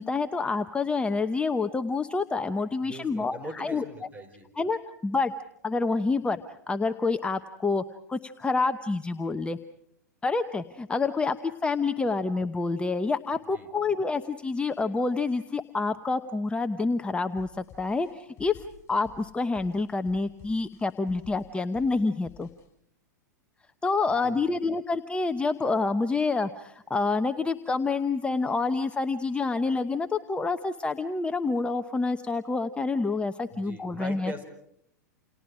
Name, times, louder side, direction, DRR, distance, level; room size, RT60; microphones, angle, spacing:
voice 1, 0.0-3.8 4.6-5.3 5.6-6.4 6.7-9.6 10.2-22.5 23.8-34.3, left 3 dB, 10° left, 9 dB, 0.9 m, -28 dB
voice 2, 2.8-4.5 12.0-12.1 13.5-13.7 24.2-24.4 33.5-34.4, right 1 dB, 15° right, 7 dB, 4.9 m, -41 dB
sound 1, 17.4-22.7, left 7 dB, 30° left, 6.9 m, -52 dB
29.5 x 29.0 x 5.0 m, 0.72 s
figure-of-eight pair, 100°, 10 cm